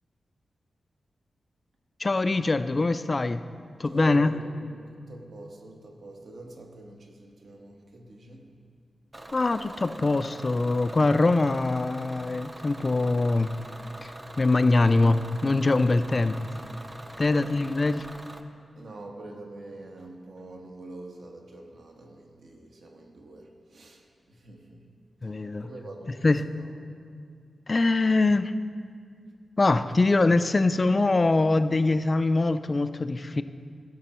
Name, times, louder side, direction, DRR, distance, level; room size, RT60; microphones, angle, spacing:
voice 1, 2.0-3.4 3.8-4.3 9.3-13.5 14.0-14.1 14.4-16.5 17.2-18.0 25.2-25.6 26.2-26.4 27.7-28.5 29.6-33.4, left 2 dB, 35° left, 12 dB, 0.3 m, -23 dB
voice 2, 3.9-8.5 17.1-18.0 18.7-24.9 25.2-26.7, right 2 dB, 65° right, 1 dB, 1.2 m, -45 dB
Bus / Engine, 9.1-18.4, right 1 dB, 20° right, 0.5 m, -44 dB
15.0 x 6.1 x 4.4 m, 2.2 s
wide cardioid pair, 115°, 0 cm